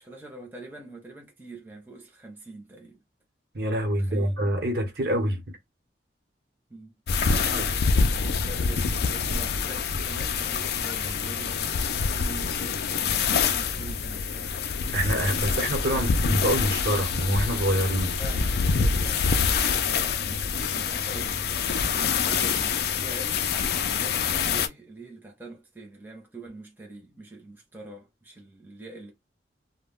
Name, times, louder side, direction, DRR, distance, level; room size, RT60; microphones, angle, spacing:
voice 1, 0.0-3.0 3.9-4.4 5.0-5.3 6.7-6.9 7.3-14.6 15.9-16.2 18.2-29.1, right 2 dB, 10° right, 0.7 m, -44 dB
voice 2, 3.5-5.4 7.2-7.4 14.9-18.2, right 1 dB, 55° right, 0.9 m, -26 dB
sound 1, 7.1-24.7, left 5 dB, 60° left, 0.4 m, -26 dB
2.2 x 2.1 x 3.5 m
head